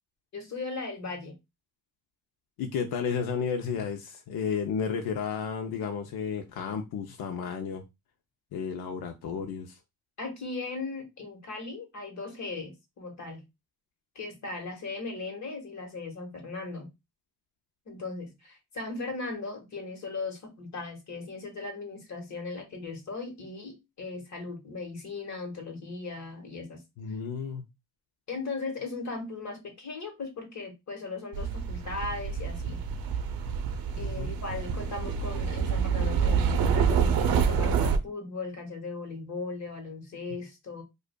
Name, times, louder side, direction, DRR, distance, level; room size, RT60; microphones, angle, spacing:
voice 1, 0.3-1.3 10.2-13.4 14.1-16.9 17.9-26.8 28.3-32.8 34.0-40.8, left 3 dB, 50° left, 1.4 m, -38 dB
voice 2, 2.6-7.8 8.5-9.8 27.0-27.6 34.0-34.3, left 6 dB, 90° left, 0.6 m, -32 dB
sound 1, 31.3-38.0, right 6 dB, 75° right, 0.6 m, -27 dB
4.9 x 2.4 x 2.2 m
cardioid pair, 150°, 36 cm